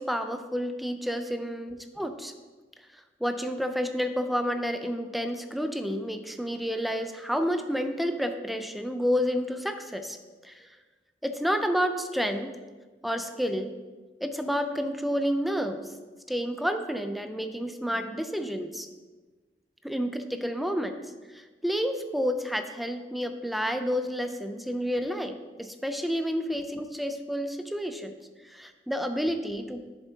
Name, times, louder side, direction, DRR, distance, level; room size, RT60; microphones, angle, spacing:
voice 1, 0.0-2.3 3.2-10.2 10.4-10.7 11.2-12.6 13.0-13.7 14.2-15.8 16.3-18.9 19.8-21.0 21.3-28.2 28.4-29.9, equal, ahead, 7 dB, 0.4 m, -30 dB
10.5 x 7.1 x 2.8 m, 1.3 s
head